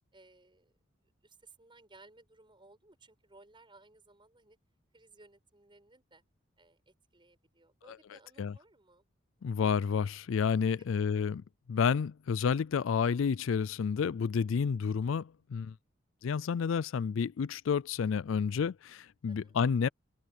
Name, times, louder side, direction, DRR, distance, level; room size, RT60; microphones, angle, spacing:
voice 1, 0.1-0.7 1.2-4.6 4.9-6.2 6.6-9.0 10.8-10.9 19.3-19.6, right 2 dB, 25° right, 6.0 m, -60 dB
voice 2, 9.4-11.4 11.7-15.7 16.2-19.9, left 6 dB, 70° left, 0.4 m, -30 dB
open air
head